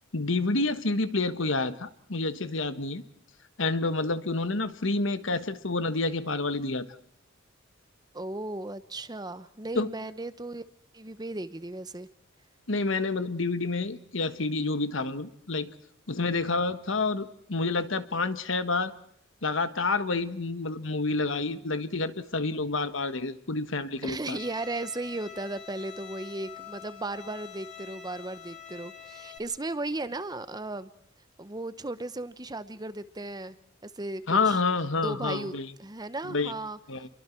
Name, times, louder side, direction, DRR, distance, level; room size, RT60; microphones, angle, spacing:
voice 1, 0.1-3.0 3.6-6.9 9.7-9.9 12.7-15.7 16.1-18.9 19.4-24.4 34.3-35.7 36.2-36.5 36.9-37.1, left 3 dB, 65° left, 11 dB, 1.4 m, -28 dB
voice 2, 8.1-10.6 10.9-12.1 24.0-30.9 31.4-33.6 33.8-34.6 35.0-35.5 35.8-36.8, right 2 dB, 20° right, 13 dB, 0.9 m, -36 dB
Bowed string instrument, 24.4-29.4, left 8 dB, 35° left, 4.3 m, -46 dB
29.5 x 23.5 x 4.5 m, 0.66 s
head